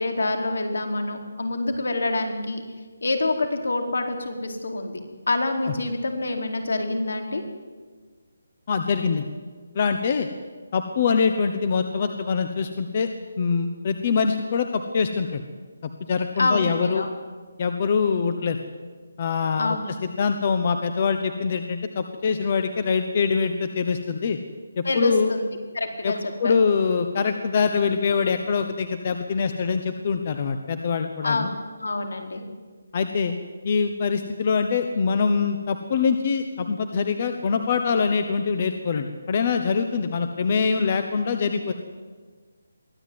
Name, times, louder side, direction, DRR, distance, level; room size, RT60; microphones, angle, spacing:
voice 1, 0.0-2.6 3.0-5.0 5.3-7.4 16.4-17.1 19.6-19.9 24.8-25.5 25.7-26.5 31.2-31.5 31.8-32.4, left 2 dB, 70° left, 4 dB, 4.4 m, -26 dB
voice 2, 8.7-9.3 9.7-10.3 10.7-13.1 13.4-15.4 16.0-17.1 17.6-18.6 19.2-19.8 20.2-24.4 24.8-25.3 26.0-26.1 26.4-31.5 32.9-33.3 33.6-41.7, left 5 dB, 25° left, 8 dB, 1.0 m, -24 dB
23.0 x 15.0 x 9.5 m, 1.5 s
hypercardioid pair, 180°, 0 cm